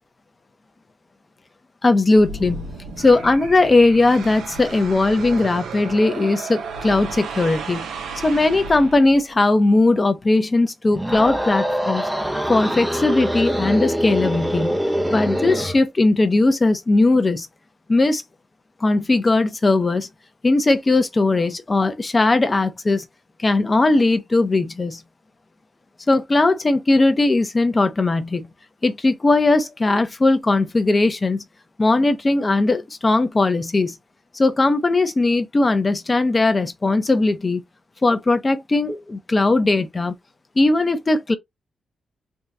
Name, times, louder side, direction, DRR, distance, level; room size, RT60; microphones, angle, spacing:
voice 1, 1.8-2.7 3.0-7.9 8.2-12.1 12.5-14.8 15.1-17.5 17.9-18.2 18.8-20.1 20.4-23.0 23.4-25.0 26.1-28.5 28.8-31.4 31.8-33.9 34.3-37.6 38.0-40.1 40.6-41.3, left 2 dB, 25° left, 0.8 m, -18 dB
sound 1, 2.1-9.3, right 4 dB, 85° right, 0.8 m, -33 dB
sound 2, 10.9-15.8, equal, 10° right, 0.6 m, -24 dB
3.6 x 2.9 x 2.7 m
cardioid pair, 110°, 0 cm